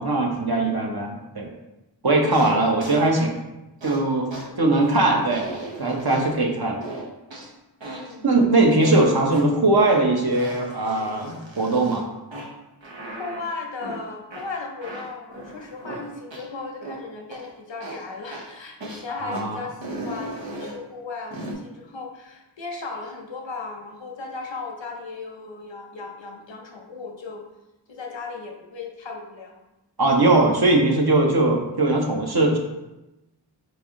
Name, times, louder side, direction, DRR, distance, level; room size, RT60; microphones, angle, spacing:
voice 1, 0.0-1.5 2.0-3.3 3.8-5.5 5.8-6.8 8.2-12.0 19.1-19.6 30.0-32.6, right 2 dB, 55° right, 1 dB, 0.8 m, -20 dB
sound 1, 2.3-2.5 2.8-3.1 3.8-4.0 4.3-4.4 4.8-5.0 5.3-6.4 6.8-7.5 7.8-8.1 8.8-9.4 9.8-10.0 10.3-12.0 12.3-12.5 12.8-13.4 13.8-14.0 14.3-14.4 14.8-16.0 16.3-16.4 16.8-17.0 17.3-17.4 17.8-18.0 18.3-18.5 18.8-19.0 19.3-19.4 19.8-20.8 21.3-21.5, right 2 dB, 85° right, 0.9 m, -36 dB
voice 2, 4.4-4.7 8.0-8.4 13.2-27.5 27.9-29.6, left 4 dB, 80° left, 2 dB, 0.8 m, -36 dB
4.2 x 3.4 x 3.6 m, 0.98 s
wide cardioid pair, 45°, 44 cm